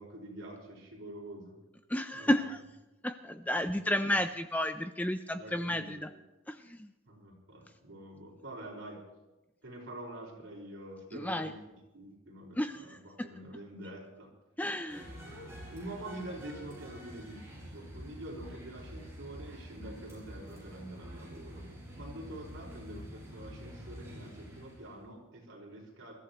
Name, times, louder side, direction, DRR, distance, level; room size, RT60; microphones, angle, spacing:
voice 1, 0.0-1.6 2.1-2.5 3.5-4.2 5.3-6.1 7.1-9.0 9.6-14.3 15.2-15.4 15.7-21.7 22.0-26.1, right 1 dB, 60° right, -2 dB, 5.1 m, -46 dB
voice 2, 1.9-2.6 3.0-6.1 6.5-6.9 11.1-11.5 12.6-13.0 14.6-15.1, left 1 dB, 5° left, 8 dB, 0.4 m, -32 dB
sound 1, 14.9-25.0, equal, 15° right, 5.6 m, -47 dB
27.0 x 14.5 x 3.0 m, 1.1 s
head